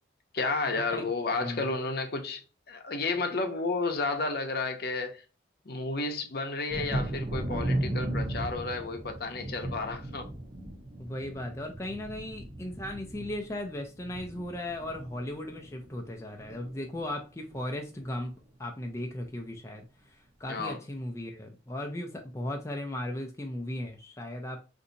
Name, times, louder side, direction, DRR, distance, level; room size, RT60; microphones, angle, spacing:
voice 1, 0.3-2.4 2.7-5.2 5.6-10.3 20.5-20.8, left 3 dB, 55° left, 0.7 m, -32 dB
Thunder, 6.7-16.1 16.4-17.1 17.5-17.6 18.0-18.2, right 1 dB, 30° right, 0.6 m, -36 dB
voice 2, 11.0-18.3 18.6-24.6, left 1 dB, 15° left, 0.4 m, -37 dB
3.9 x 2.6 x 2.6 m
head